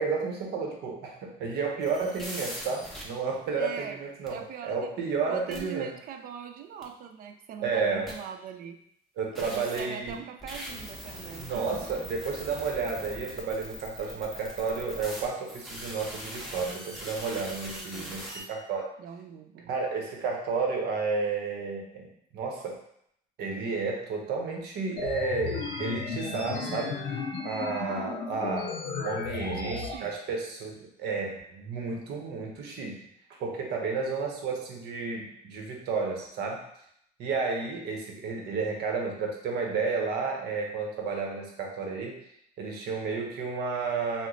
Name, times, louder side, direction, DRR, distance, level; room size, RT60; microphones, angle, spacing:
voice 1, 0.0-5.9 7.6-8.2 9.2-10.2 11.4-18.9 19.7-22.8 23.4-27.0 27.4-28.7 29.0-33.0 33.4-36.6 37.2-42.2 42.6-44.3, right 4 dB, 75° right, 0 dB, 0.8 m, -32 dB
sound 1, 1.8-3.0 4.3-4.4 5.5-5.6 6.8-6.9 8.1-8.2 9.3-18.4, equal, ahead, 0.8 m, -41 dB
voice 2, 3.5-4.0 4.3-4.9 5.2-8.8 9.4-11.9 17.7-18.2 19.0-19.7 28.9-30.1, right 8 dB, 60° right, 7 dB, 0.4 m, -42 dB
sound 2, 25.0-30.0, left 5 dB, 75° left, 0.5 m, -34 dB
3.0 x 2.0 x 3.8 m, 0.71 s
cardioid pair, 110°, 17 cm